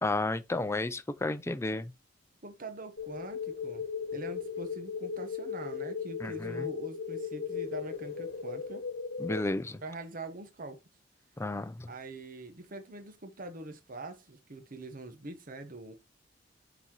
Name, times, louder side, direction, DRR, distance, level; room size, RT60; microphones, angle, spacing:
voice 1, 0.0-1.9 6.2-6.7 9.2-9.8 11.4-11.9, left 2 dB, 15° left, 0.5 m, -32 dB
voice 2, 2.4-8.8 9.8-10.8 11.9-15.9, right 2 dB, 50° right, 1.0 m, -44 dB
sound 1, 3.0-9.4, left 6 dB, 60° left, 1.3 m, -37 dB
8.5 x 4.1 x 2.9 m
head